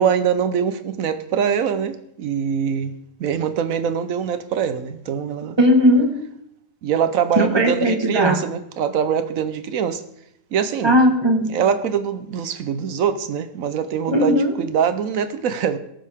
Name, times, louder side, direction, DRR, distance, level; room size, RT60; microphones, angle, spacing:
voice 1, 0.0-2.9 3.2-5.6 6.8-10.0 10.5-11.0 11.5-15.8, right 7 dB, 60° right, 0.9 m, -23 dB
voice 2, 5.6-6.1 7.4-8.4 10.8-11.6 14.1-14.5, equal, 15° right, 1.4 m, -17 dB
18.0 x 7.5 x 3.6 m
omnidirectional pair, 1.9 m